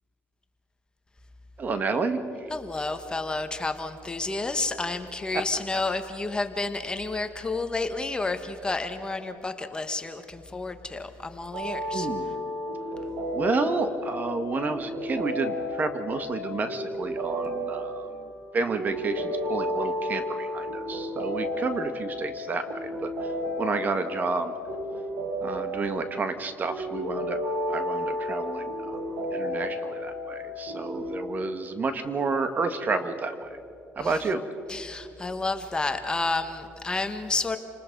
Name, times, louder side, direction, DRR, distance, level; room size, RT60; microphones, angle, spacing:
voice 1, 1.6-2.5 11.9-12.4 13.3-18.1 18.5-23.3 23.6-24.5 25.4-27.4 27.7-29.0 29.3-33.5 33.9-34.4, right 4 dB, 35° right, 9 dB, 1.6 m, -30 dB
voice 2, 2.5-12.1 34.0-34.1 34.7-37.6, left 3 dB, 20° left, 8 dB, 1.4 m, -30 dB
sound 1, 11.5-31.2, left 1 dB, 70° right, 7.3 m, -32 dB
28.5 x 20.0 x 5.4 m, 2.6 s
cardioid pair, 95°, 5 cm